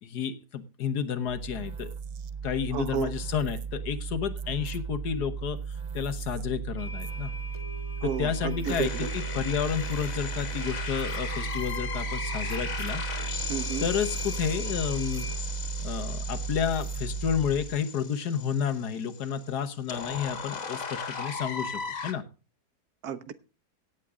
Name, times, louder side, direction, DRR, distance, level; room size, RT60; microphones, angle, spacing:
voice 1, 0.0-1.9 2.4-5.6 5.9-7.3 8.0-13.0 13.8-15.3 15.8-22.3, left 8 dB, 85° left, 1.7 m, -31 dB
sound 1, 1.3-17.8, right 6 dB, 60° right, 0.5 m, -35 dB
voice 2, 2.7-3.1 8.0-9.1 13.5-13.9 23.0-23.3, right 8 dB, 75° right, 1.4 m, -32 dB
sound 2, 6.8-15.4, left 2 dB, 20° left, 1.2 m, -44 dB
sound 3, 8.6-22.1, left 5 dB, 55° left, 2.0 m, -37 dB
17.0 x 8.3 x 3.7 m
omnidirectional pair, 1.7 m